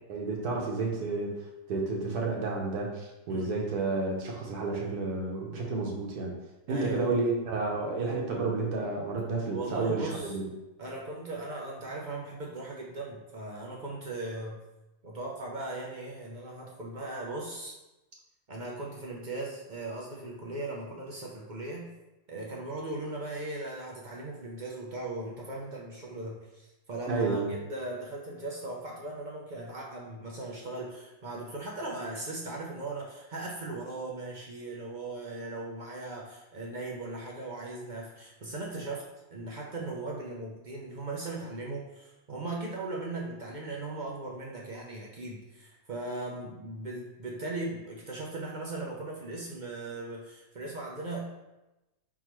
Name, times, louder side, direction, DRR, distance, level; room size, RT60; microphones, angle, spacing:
voice 1, 0.1-1.4 1.7-6.3 6.7-10.4 27.1-27.5, right 3 dB, 85° right, -1 dB, 1.5 m, -31 dB
voice 2, 6.7-7.1 9.5-10.4 10.8-14.6 15.0-17.7 18.5-21.9 22.3-39.1 39.3-51.3, right 2 dB, 55° right, -3 dB, 0.5 m, -38 dB
4.7 x 3.7 x 3.0 m, 0.99 s
omnidirectional pair, 1.6 m